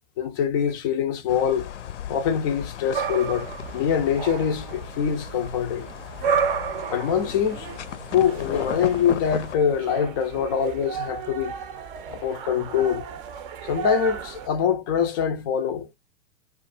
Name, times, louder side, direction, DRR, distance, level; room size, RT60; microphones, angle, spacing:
voice 1, 0.2-1.7 2.1-3.5 3.7-5.9 6.9-7.7 8.1-11.5 12.1-13.0 13.6-15.9, left 8 dB, 20° left, 0.3 m, -24 dB
sound 1, 1.3-9.6, left 9 dB, 70° left, 0.5 m, -36 dB
sound 2, 2.9-14.5, right 6 dB, 45° right, 0.6 m, -32 dB
2.4 x 2.3 x 2.6 m
figure-of-eight pair, 100°, 38 cm